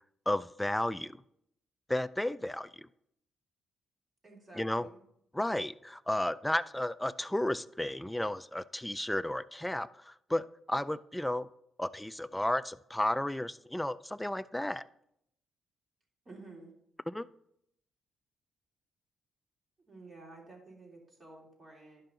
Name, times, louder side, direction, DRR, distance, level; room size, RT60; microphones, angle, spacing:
voice 1, 0.3-1.2 1.9-2.9 4.6-4.9 5.3-11.5 11.8-14.8 17.1-17.3, left 1 dB, 5° left, 15 dB, 0.3 m, -33 dB
voice 2, 4.2-5.0 16.2-16.7 19.9-22.0, right 2 dB, 30° right, -2 dB, 3.1 m, -52 dB
11.5 x 5.5 x 3.9 m, 0.74 s
cardioid pair, 90°, 0 cm